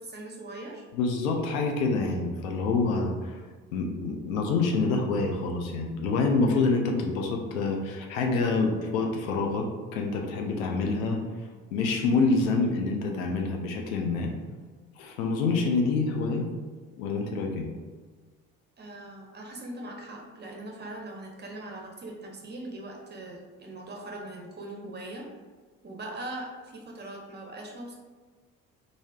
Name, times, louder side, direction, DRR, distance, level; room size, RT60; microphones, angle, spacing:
voice 1, 0.0-0.8 18.8-25.3 25.8-27.9, right 1 dB, 25° right, 0 dB, 0.7 m, -40 dB
voice 2, 0.9-3.4 3.7-9.7 9.9-11.2 11.7-14.3 15.0-16.5 17.0-17.7, left 3 dB, 80° left, 2 dB, 0.5 m, -27 dB
3.1 x 2.6 x 2.3 m, 1.4 s
figure-of-eight pair, 50°, 41 cm